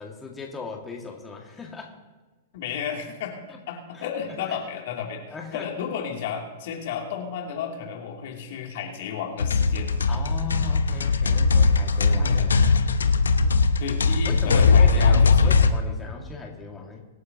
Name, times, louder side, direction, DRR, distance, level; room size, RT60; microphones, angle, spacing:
voice 1, 0.0-2.0 3.9-4.1 4.5-4.6 5.3-5.7 10.1-12.4 14.2-17.1, left 4 dB, 15° left, 0 dB, 2.0 m, -38 dB
voice 2, 2.5-9.9 12.1-12.5 13.8-15.6, left 7 dB, 60° left, 1 dB, 2.8 m, -33 dB
sound 1, 9.4-15.7, left 4 dB, 80° left, 0.8 m, -19 dB
24.5 x 9.4 x 2.9 m, 1.2 s
hypercardioid pair, 110°, 0 cm